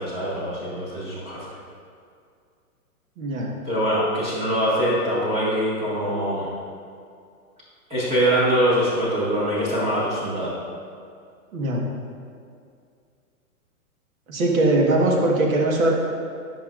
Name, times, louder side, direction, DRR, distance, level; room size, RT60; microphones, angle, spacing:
voice 1, 0.0-1.4 3.6-6.5 7.9-10.5, equal, 15° right, -10 dB, 1.6 m, -23 dB
voice 2, 3.2-3.5 11.5-11.8 14.3-15.9, right 2 dB, 70° right, -1 dB, 1.5 m, -21 dB
11.0 x 5.6 x 2.5 m, 2.3 s
hypercardioid pair, 155°, 43 cm